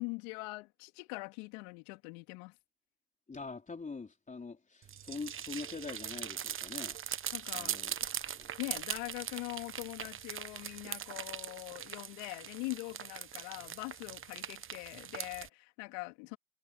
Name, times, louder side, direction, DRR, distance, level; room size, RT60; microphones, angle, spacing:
voice 1, 0.0-2.5 7.3-7.8 8.6-16.4, left 29 dB, 70° left, 2.9 m, -42 dB
voice 2, 3.3-7.0 7.5-8.0 8.3-8.6, left 4 dB, 20° left, 4.1 m, -44 dB
sound 1, 4.8-15.5, right 9 dB, 30° right, 1.2 m, -41 dB
hypercardioid pair, 85°, 41 cm